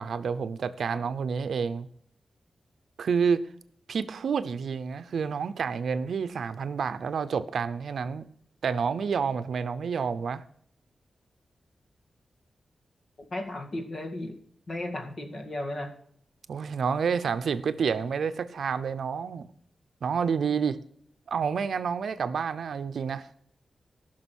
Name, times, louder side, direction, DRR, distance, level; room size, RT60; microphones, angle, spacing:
voice 1, 0.0-1.9 3.0-3.5 3.9-8.3 8.6-10.4 16.5-19.5 20.0-20.8 21.3-23.3, right 6 dB, 75° right, 0.7 m, -29 dB
voice 2, 13.3-14.4 14.7-15.9, left 1 dB, 40° left, 2.0 m, -34 dB
15.5 x 6.2 x 6.2 m
wide cardioid pair, 175°, 0 cm